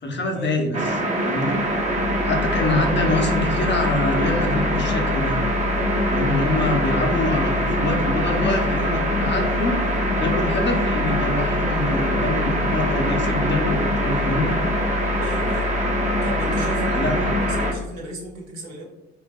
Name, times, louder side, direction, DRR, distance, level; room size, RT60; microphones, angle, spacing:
voice 1, 0.0-1.6 2.2-5.4 6.1-9.8 10.1-14.6 16.9-17.4, left 2 dB, 40° left, 2 dB, 0.7 m, -25 dB
sound 1, 0.7-17.7, equal, 25° right, 0.7 m, -23 dB
voice 2, 15.2-15.7 16.2-18.8, right 1 dB, 70° right, -2 dB, 1.0 m, -35 dB
3.2 x 2.6 x 2.3 m, 1.0 s
hypercardioid pair, 60°, 29 cm